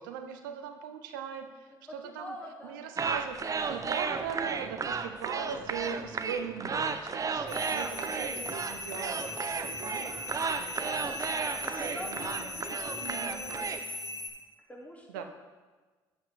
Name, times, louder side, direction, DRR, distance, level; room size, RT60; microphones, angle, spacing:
voice 1, 0.0-2.4 2.6-11.1 11.8-13.6 15.1-15.2, right 7 dB, 90° right, 7 dB, 0.6 m, -40 dB
voice 2, 2.0-2.9 5.0-5.6 8.1-8.5 9.1-9.4 11.3-14.0 14.7-15.2, left 1 dB, 15° left, -2 dB, 2.4 m, -46 dB
sound 1, 3.0-13.8, right 5 dB, 35° right, 0.6 m, -34 dB
sound 2, 7.5-14.3, left 2 dB, 40° left, 1.6 m, -39 dB
8.8 x 7.9 x 3.4 m, 1.3 s
hypercardioid pair, 55°, 10 cm